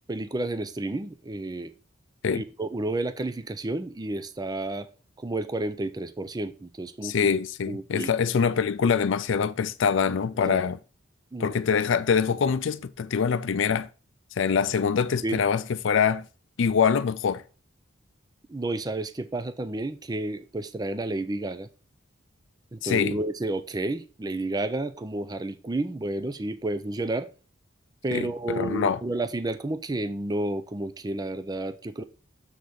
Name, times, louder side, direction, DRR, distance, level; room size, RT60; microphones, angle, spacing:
voice 1, 0.1-1.7 2.3-4.9 5.2-7.4 7.7-8.1 10.4-10.6 11.3-11.6 15.2-15.4 18.5-21.7 22.7-27.3 28.0-32.0, right 2 dB, 20° right, 0.5 m, -31 dB
voice 2, 7.0-10.8 11.4-13.9 14.4-16.2 16.6-17.4 22.8-23.2 28.1-29.0, left 6 dB, 70° left, 0.4 m, -24 dB
6.9 x 4.0 x 6.3 m
head